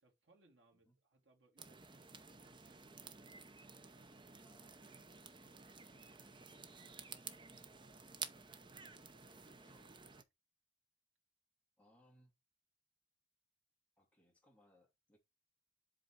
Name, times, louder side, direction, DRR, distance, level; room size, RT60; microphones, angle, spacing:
voice 1, 0.0-3.0, right 2 dB, 80° right, 2.2 m, -73 dB
sound 1, 1.6-10.2, right 5 dB, 25° right, 0.8 m, -53 dB
voice 2, 4.4-5.3 8.2-8.4 9.2-9.9 11.8-12.3 14.0-15.2, equal, 5° left, 2.5 m, -71 dB
7.8 x 4.3 x 4.7 m
head